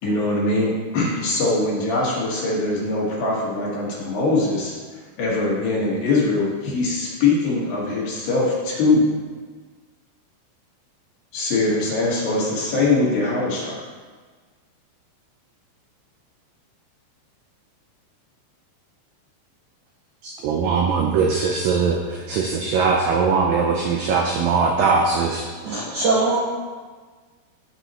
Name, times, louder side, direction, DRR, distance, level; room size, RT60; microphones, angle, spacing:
voice 1, 0.0-4.7 5.2-9.0 11.3-13.8, left 2 dB, 65° left, -5 dB, 3.2 m, -22 dB
voice 2, 20.2-25.5, right 5 dB, 90° right, 1 dB, 1.9 m, -21 dB
voice 3, 25.6-26.4, right 3 dB, 70° right, -6 dB, 1.8 m, -21 dB
14.0 x 5.4 x 3.0 m, 1.5 s
omnidirectional pair, 4.8 m